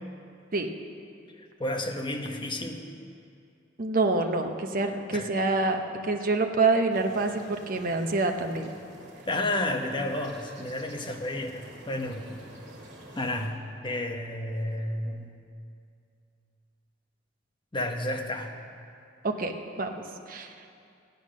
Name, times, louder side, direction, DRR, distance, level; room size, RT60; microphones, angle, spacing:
voice 1, 1.6-2.8 5.1-5.3 9.3-12.4 13.2-13.6 13.8-15.3 17.7-18.5, left 1 dB, 25° left, 3 dB, 1.0 m, -31 dB
voice 2, 3.8-8.7 19.2-19.5 19.8-20.7, right 3 dB, 45° right, 4 dB, 0.9 m, -27 dB
sound 1, 6.9-13.5, right 1 dB, 65° right, 2.2 m, -49 dB
15.0 x 9.3 x 6.4 m, 2.5 s
head